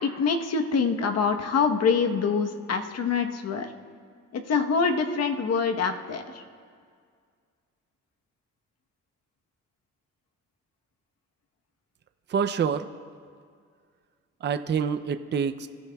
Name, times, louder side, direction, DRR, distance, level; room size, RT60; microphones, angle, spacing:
voice 1, 0.0-3.7 4.3-6.4, left 5 dB, 55° left, 5 dB, 1.1 m, -25 dB
voice 2, 12.3-12.9 14.4-15.7, right 6 dB, 35° right, 8 dB, 0.5 m, -26 dB
26.0 x 13.0 x 2.3 m, 2.1 s
cardioid pair, 90°, 30 cm